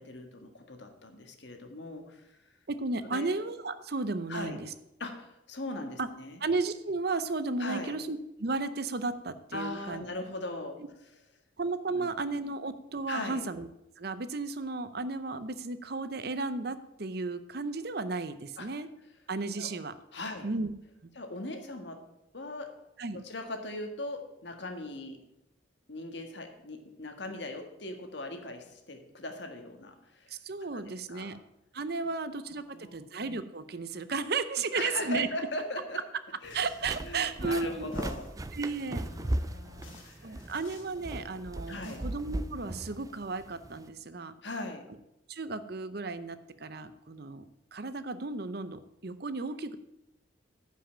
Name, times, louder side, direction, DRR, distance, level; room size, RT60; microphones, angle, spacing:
voice 1, 0.0-2.5 3.1-3.3 4.3-4.6 5.0-6.4 7.6-8.0 9.5-11.1 11.9-12.1 13.1-13.4 18.6-18.7 19.6-19.7 20.1-20.5 21.1-22.0 22.3-22.7 23.1-25.2 25.9-30.4 30.7-31.4 32.7-33.0 34.7-36.0 36.4-36.6 37.0-38.3 39.0-40.5 41.7-42.0 44.4-44.8, left 2 dB, 60° left, 5 dB, 1.6 m, -39 dB
voice 2, 2.7-4.7 6.0-6.1 6.4-10.0 11.6-13.7 14.0-18.9 19.3-19.9 20.4-20.7 21.0-21.1 23.0-23.2 30.3-31.4 31.7-35.3 36.5-37.9 38.5-39.0 40.2-44.3 45.3-47.4 47.7-49.8, right 3 dB, 50° right, 12 dB, 0.7 m, -34 dB
walk downstairs, 36.4-43.9, right 1 dB, 15° right, 0.4 m, -37 dB
sound 1, 36.5-37.0 37.9-38.4 39.4-39.5 39.8-40.9 41.6-42.0, left 5 dB, 85° left, 2.3 m, -56 dB
10.0 x 5.7 x 8.6 m, 0.86 s
head